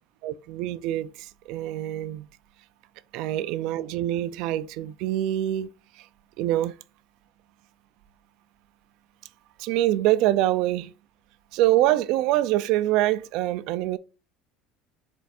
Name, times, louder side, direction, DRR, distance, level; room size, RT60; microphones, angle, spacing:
voice 1, 0.2-2.3 3.1-5.7 6.4-6.7 9.6-10.9 11.5-14.0, right 14 dB, 60° right, 0.3 m, -25 dB
4.3 x 2.4 x 4.2 m
cardioid pair, 160°, 0 cm